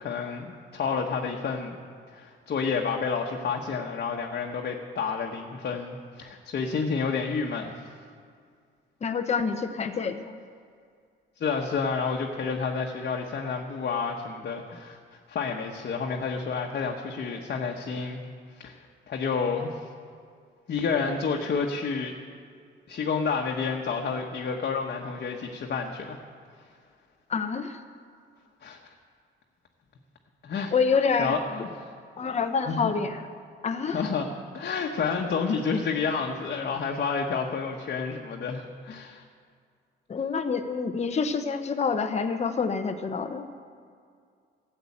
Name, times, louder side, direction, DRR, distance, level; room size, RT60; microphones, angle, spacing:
voice 1, 0.0-1.8 2.1-7.7 11.4-15.0 15.3-18.2 18.6-18.7 19.1-19.9 20.7-22.1 22.9-26.2 28.6-28.8 30.4-30.7 31.2-31.9 32.7-32.9 33.9-34.3 34.5-39.2, left 5 dB, 55° left, 1 dB, 1.2 m, -30 dB
voice 2, 9.0-10.4 27.3-27.8 30.7-31.3 32.2-33.2 33.6-34.0 40.1-43.5, left 5 dB, 35° left, 7 dB, 0.8 m, -27 dB
13.5 x 8.0 x 8.5 m, 2.2 s
cardioid pair, 90°, 20 cm